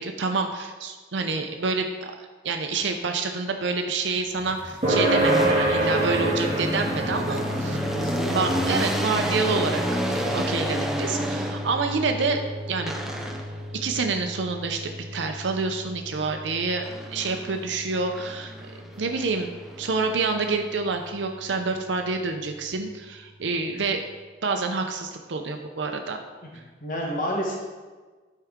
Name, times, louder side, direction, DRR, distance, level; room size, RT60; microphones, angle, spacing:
voice 1, 0.0-7.8 8.3-12.4 12.7-12.9 13.8-16.8 17.1-18.5 19.0-19.5 19.8-24.1 24.4-26.2 26.5-26.6, right 4 dB, 80° right, 4 dB, 0.6 m, -27 dB
sound 1, 4.3-12.0 12.9-13.7 16.8-17.7 18.1-20.5, equal, ahead, 0.5 m, -31 dB
sound 2, 4.8-19.7, right 1 dB, 35° right, 1.5 m, -29 dB
voice 2, 7.9-8.6 23.7-23.9 26.8-27.6, equal, 45° left, -2 dB, 1.2 m, -30 dB
11.0 x 4.7 x 3.6 m, 1.4 s
head